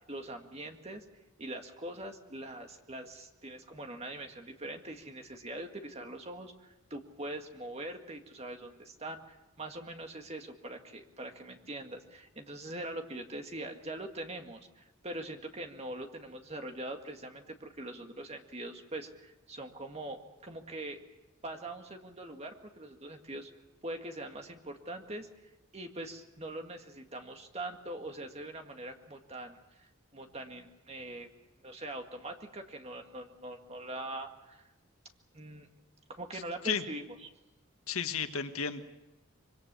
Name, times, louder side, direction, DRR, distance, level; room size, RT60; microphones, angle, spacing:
voice 1, 0.1-1.1 1.4-21.0 21.4-23.5 23.8-25.3 25.7-31.3 31.6-34.7 35.3-35.7 36.1-37.3, right 1 dB, 30° right, 4 dB, 2.0 m, -43 dB
voice 2, 37.9-38.8, left 6 dB, 85° left, 7 dB, 1.6 m, -32 dB
25.5 x 23.5 x 7.0 m, 0.93 s
head